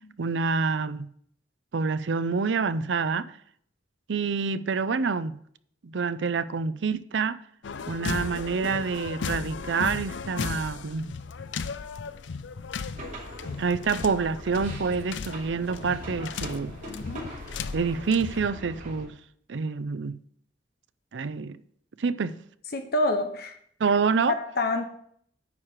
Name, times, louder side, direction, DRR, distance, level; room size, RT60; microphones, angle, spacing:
voice 1, 0.2-1.1 1.7-3.3 4.1-5.4 5.8-7.4 7.9-11.1 13.6-16.7 17.7-19.2 19.5-20.2 21.1-21.6 22.0-22.4 23.8-24.3, right 5 dB, 80° right, 0.5 m, -27 dB
sound 1, 7.6-18.5, left 5 dB, 85° left, 0.5 m, -36 dB
sound 2, 12.9-19.1, right 1 dB, 50° right, 2.8 m, -42 dB
voice 2, 16.9-17.3 22.7-23.6 24.3-24.8, left 2 dB, 60° left, 0.9 m, -28 dB
9.7 x 4.8 x 7.4 m
head